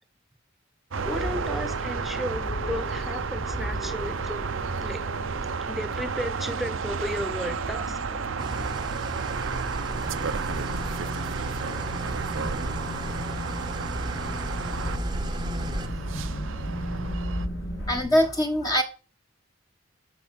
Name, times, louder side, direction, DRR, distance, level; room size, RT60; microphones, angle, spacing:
sound 1, 0.9-18.0, equal, 70° left, 4.6 m, -36 dB
sound 2, 0.9-17.5, right 5 dB, 70° right, 0.7 m, -32 dB
voice 1, 1.0-4.6 4.8-5.0 5.7-8.2, equal, ahead, 10 dB, 1.1 m, -34 dB
Engine starting / Idling, 8.4-15.9, right 3 dB, 20° right, 0.9 m, -37 dB
voice 2, 15.5-17.4 17.8-18.8, equal, 20° left, 3 dB, 1.2 m, -27 dB
13.0 x 4.9 x 6.9 m, 0.34 s
head